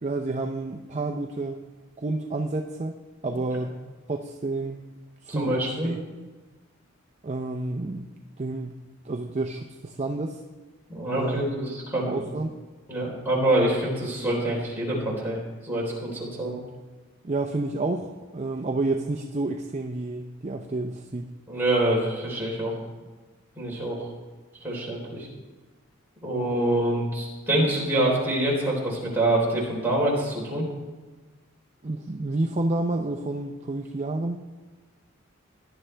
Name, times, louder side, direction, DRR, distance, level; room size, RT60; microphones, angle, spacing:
voice 1, 0.0-1.6 2.0-3.0 3.2-3.7 4.1-4.8 5.2-6.0 7.2-8.1 8.4-8.8 9.0-10.4 11.1-11.4 12.0-12.6 17.2-21.3 31.8-34.4, right 2 dB, 35° right, 4 dB, 0.5 m, -29 dB
voice 2, 5.3-5.9 10.9-12.2 12.9-16.6 21.5-22.8 23.6-24.1 24.6-25.3 26.2-30.7, right 1 dB, 10° right, -5 dB, 3.8 m, -26 dB
17.5 x 11.0 x 3.3 m, 1.3 s
head